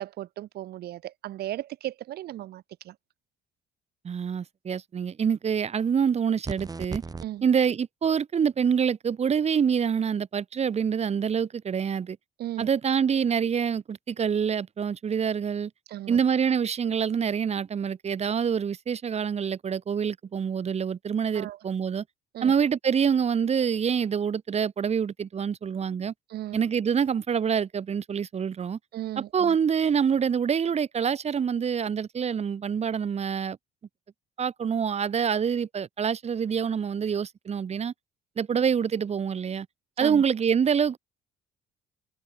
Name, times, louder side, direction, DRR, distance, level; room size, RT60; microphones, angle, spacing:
voice 1, 0.0-2.9 7.2-7.4 12.4-12.7 15.9-16.2 21.3-21.6 22.3-22.5 26.3-26.6 28.9-29.6 40.0-40.2, right 14 dB, 70° right, 4.7 m, -36 dB
voice 2, 4.0-7.0 7.4-12.2 12.6-15.7 16.1-22.0 22.4-26.1 26.5-28.8 29.2-33.6 34.4-37.9 38.4-39.7 40.0-41.0, right 7 dB, 40° right, 4.7 m, -26 dB
sound 1, 6.4-7.3, right 4 dB, 20° right, 4.6 m, -35 dB
cardioid pair, 110°, 17 cm